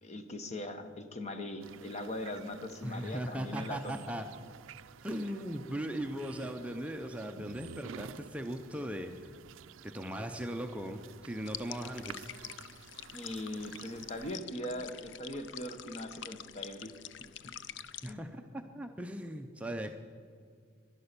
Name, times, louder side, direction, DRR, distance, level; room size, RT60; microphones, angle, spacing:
voice 1, 0.0-4.0 13.1-16.9 17.4-17.5 18.1-18.2, left 1 dB, 35° left, 8 dB, 0.9 m, -40 dB
sound 1, 1.6-14.4, right 7 dB, 75° right, 0.4 m, -52 dB
voice 2, 2.8-4.3 5.0-9.1 9.8-12.3 18.0-18.4 18.7-19.9, right 1 dB, 5° right, 4 dB, 0.5 m, -38 dB
sound 2, 11.5-18.1, left 10 dB, 60° left, 0.4 m, -46 dB
11.5 x 11.0 x 6.7 m, 2.1 s
head